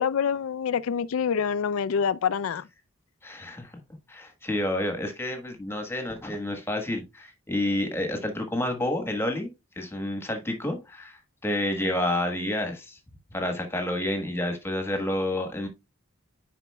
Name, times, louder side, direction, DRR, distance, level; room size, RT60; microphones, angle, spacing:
voice 1, 0.0-2.6, left 7 dB, 80° left, 0.4 m, -26 dB
voice 2, 3.2-3.7 4.1-13.0 13.3-15.7, left 1 dB, 10° left, 1.3 m, -29 dB
9.9 x 5.0 x 2.2 m
head